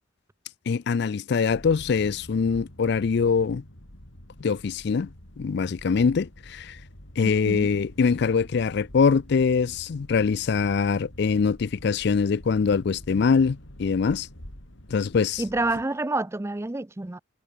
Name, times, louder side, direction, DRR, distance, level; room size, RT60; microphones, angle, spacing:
voice 1, 0.7-3.6 4.4-5.1 5.4-6.8 7.2-14.3 14.9-15.4, left 5 dB, 60° left, 0.4 m, -23 dB
sound 1, 1.5-15.8, equal, 85° left, 4.7 m, -46 dB
voice 2, 15.4-17.2, right 2 dB, 15° right, 0.4 m, -28 dB
head